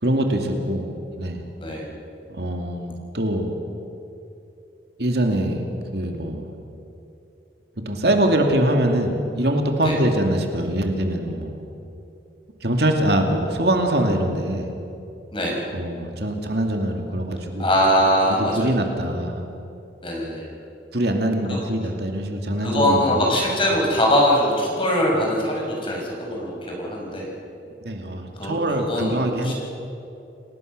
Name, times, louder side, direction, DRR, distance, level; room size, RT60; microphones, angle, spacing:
voice 1, 0.0-0.8 1.2-1.4 2.3-3.5 5.0-5.6 5.9-6.5 7.8-11.5 12.6-14.7 15.7-17.7 18.3-19.4 20.9-23.2 27.8-29.5, right 1 dB, 65° right, 3 dB, 2.5 m, -23 dB
voice 2, 17.6-18.8 20.0-20.5 21.5-21.6 22.6-27.3 28.4-29.5, equal, 30° left, -1 dB, 5.8 m, -22 dB
29.0 x 18.5 x 6.7 m, 2.8 s
head